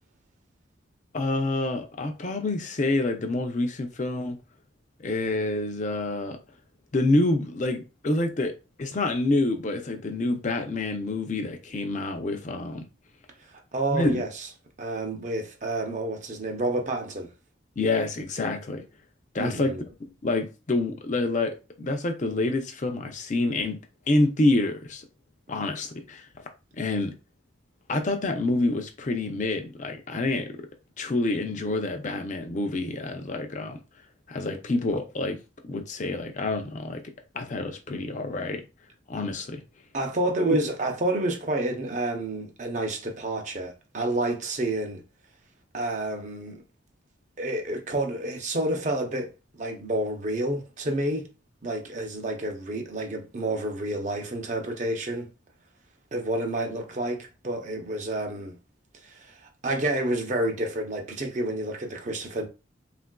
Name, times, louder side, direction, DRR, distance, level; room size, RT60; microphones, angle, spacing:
voice 1, 1.1-4.4 5.0-6.4 6.9-12.8 13.9-14.2 17.8-18.8 19.3-19.7 20.0-23.8 24.1-25.0 25.5-26.3 26.8-27.1 27.9-30.6 31.0-33.8 34.3-35.4 35.6-37.0 37.3-38.6 39.1-39.6 40.5-40.6, left 2 dB, 40° left, 0.5 m, -27 dB
voice 2, 13.5-14.5 14.8-17.3 19.4-19.8 39.9-45.0 45.7-46.6 47.4-51.3 51.6-55.3 56.1-58.5 59.0-62.5, right 1 dB, 40° right, 0.6 m, -29 dB
3.6 x 2.4 x 2.2 m
head